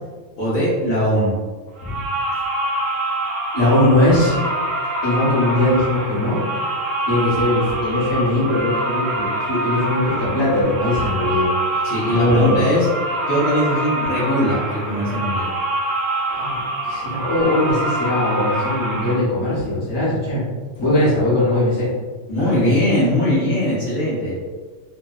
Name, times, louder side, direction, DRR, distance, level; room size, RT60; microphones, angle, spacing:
voice 1, 0.4-1.3 11.8-12.9 13.3-15.5 22.3-24.3, equal, 55° left, -9 dB, 0.9 m, -20 dB
sound 1, 1.8-19.1, right 1 dB, 55° right, 0.8 m, -25 dB
voice 2, 3.5-4.4 5.0-6.4 7.0-11.5 12.1-12.6 16.3-20.4 20.7-21.9 22.4-22.7, left 1 dB, 25° left, -9 dB, 0.7 m, -20 dB
2.6 x 2.1 x 2.3 m, 1.5 s
omnidirectional pair, 1.4 m